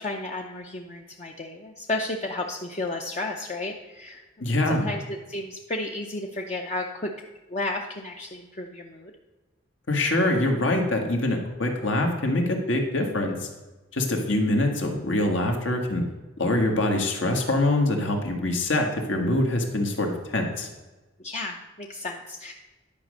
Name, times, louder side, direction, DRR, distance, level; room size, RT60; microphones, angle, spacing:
voice 1, 0.0-4.2 4.7-7.1 7.5-9.1 21.2-22.5, left 2 dB, 35° left, 1 dB, 0.6 m, -33 dB
voice 2, 4.4-4.9 9.9-13.4 13.9-16.0 16.4-20.7, left 1 dB, 75° left, 2 dB, 1.7 m, -24 dB
10.5 x 5.2 x 6.4 m, 1.2 s
head